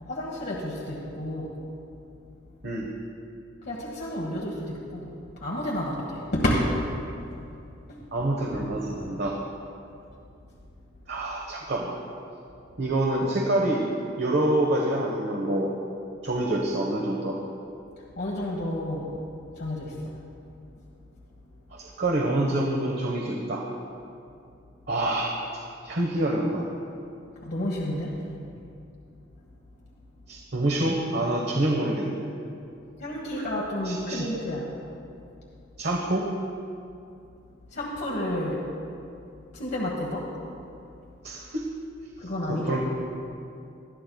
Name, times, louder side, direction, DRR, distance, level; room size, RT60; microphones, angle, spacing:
voice 1, 0.0-1.5 3.6-6.7 7.9-8.0 18.1-19.1 19.5-20.2 27.4-28.2 33.0-34.8 37.7-38.6 39.5-40.3 42.2-42.8, left 1 dB, 60° left, -3 dB, 1.4 m, -30 dB
voice 2, 8.1-9.4 11.1-12.0 12.8-13.9 14.2-15.7 16.2-17.4 21.7-23.6 24.9-25.3 25.8-26.7 30.3-32.3 33.3-33.4 33.8-34.3 35.8-36.3 41.2-41.6 42.5-42.8, right 1 dB, 60° right, -1 dB, 1.1 m, -26 dB
21.0 x 12.0 x 2.3 m, 2.6 s
head